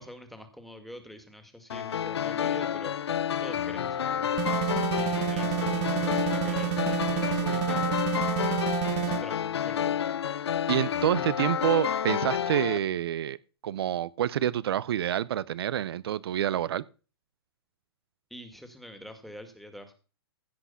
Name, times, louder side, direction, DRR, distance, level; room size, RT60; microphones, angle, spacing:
voice 1, 0.0-3.1 3.4-8.4 8.9-10.0 18.3-19.9, equal, ahead, 2.1 m, -46 dB
sound 1, 1.7-12.8, left 9 dB, 85° left, 0.7 m, -29 dB
sound 2, 4.4-9.2, right 19 dB, 40° right, 0.9 m, -30 dB
voice 2, 10.7-13.4 13.6-16.8, right 11 dB, 70° right, 0.6 m, -27 dB
16.0 x 6.0 x 5.7 m
hypercardioid pair, 135°, 13 cm